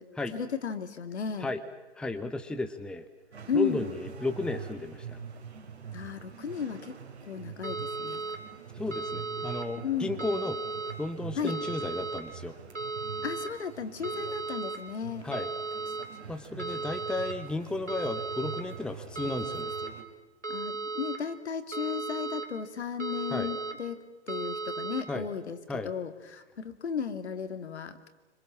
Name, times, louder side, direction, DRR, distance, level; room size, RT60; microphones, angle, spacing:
voice 1, 0.0-1.5 3.5-3.9 5.9-8.2 9.8-10.3 11.4-11.6 13.2-15.3 20.5-28.1, left 6 dB, 70° left, 9 dB, 2.4 m, -35 dB
voice 2, 2.0-3.1 3.5-5.2 8.8-10.6 11.0-12.6 15.2-15.5 16.3-19.7 23.3-23.5 25.1-25.3 25.7-25.9, left 2 dB, 5° left, 7 dB, 1.0 m, -33 dB
sound 1, 3.3-20.0, right 6 dB, 65° right, 3.7 m, -45 dB
sound 2, 7.6-8.4 8.9-9.6 10.2-10.9 11.5-12.2 12.8-13.5 14.0-14.8 15.3-16.1 16.6-17.3 17.9-18.6 19.2-19.9 20.4-21.2 21.7-22.5 23.0-23.7 24.3-25.0, right 3 dB, 90° right, 3.5 m, -35 dB
26.0 x 26.0 x 7.4 m, 1.1 s
figure-of-eight pair, 120°, 35 cm